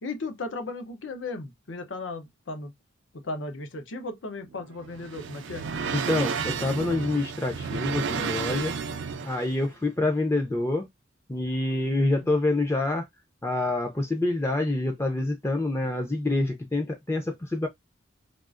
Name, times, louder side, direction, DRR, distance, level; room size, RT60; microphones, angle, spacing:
voice 1, 0.0-2.7 3.1-5.6, left 3 dB, 80° left, 0.7 m, -36 dB
sound 1, 4.4-9.6, right 6 dB, 75° right, 0.4 m, -32 dB
voice 2, 5.9-8.7 9.2-10.8 11.3-13.1 13.4-17.7, left 2 dB, 15° left, 0.4 m, -27 dB
3.6 x 2.4 x 2.4 m
head